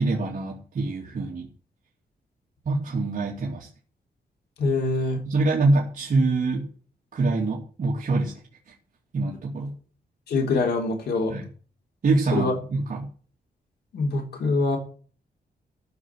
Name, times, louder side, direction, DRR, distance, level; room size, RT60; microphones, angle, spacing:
voice 1, 0.0-1.5 2.6-3.7 5.2-6.7 7.1-8.3 8.7-8.8 9.1-9.8 11.3-11.5 12.0-13.1, right 3 dB, 50° right, -3 dB, 2.7 m, -25 dB
voice 2, 4.6-5.2 10.3-11.3 12.3-12.5 13.9-14.8, left 3 dB, 75° left, 2 dB, 3.9 m, -24 dB
15.0 x 6.2 x 7.8 m, 0.42 s
wide cardioid pair, 140°, 17 cm